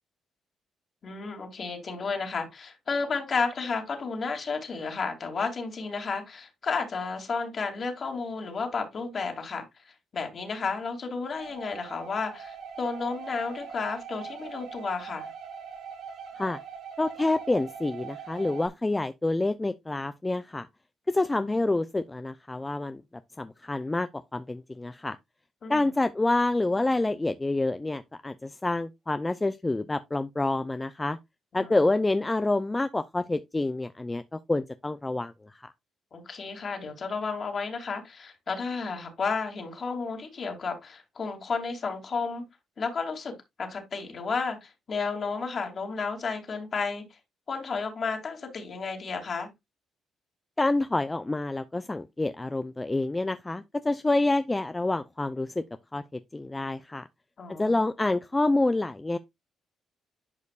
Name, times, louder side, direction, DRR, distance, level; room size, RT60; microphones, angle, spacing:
voice 1, 1.0-15.3 25.6-25.9 31.5-31.8 36.1-42.4 42.8-47.0 47.5-49.5 57.4-57.7, left 4 dB, 45° left, 2.6 m, -32 dB
sound 1, 11.4-18.7, right 6 dB, 70° right, 1.6 m, -42 dB
voice 2, 17.0-20.7 21.1-23.0 23.4-25.2 25.7-31.2 31.5-35.7 50.6-55.6 55.9-57.1 57.6-59.2, left 2 dB, 15° left, 0.5 m, -27 dB
10.5 x 5.2 x 2.4 m
cardioid pair, 90°, 0 cm